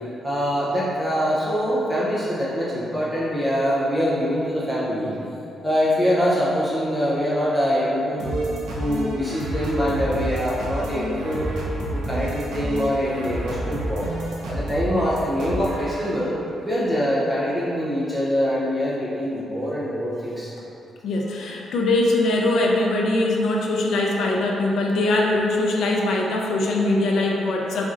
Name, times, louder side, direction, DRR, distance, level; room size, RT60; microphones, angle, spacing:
voice 1, 0.2-5.1 5.6-8.4 8.8-11.4 11.9-14.2 14.5-16.3 16.6-20.5, equal, 5° right, -9 dB, 0.5 m, -24 dB
sound 1, 8.2-16.4, right 1 dB, 90° right, 0.7 m, -30 dB
voice 2, 21.0-27.9, left 2 dB, 60° left, -1 dB, 0.5 m, -22 dB
4.2 x 3.7 x 2.5 m, 3.0 s
cardioid pair, 180°, 0 cm